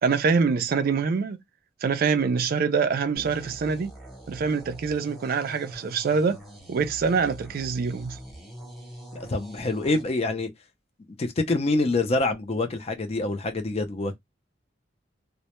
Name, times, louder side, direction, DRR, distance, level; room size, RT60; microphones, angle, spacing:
voice 1, 0.0-1.4 1.8-3.9 4.3-6.4 6.7-8.2, right 5 dB, 55° right, 0.3 m, -25 dB
sound 1, 3.2-10.0, equal, ahead, 0.7 m, -44 dB
voice 2, 9.1-10.5 11.2-14.2, left 2 dB, 35° left, 0.4 m, -26 dB
2.1 x 2.1 x 2.8 m
head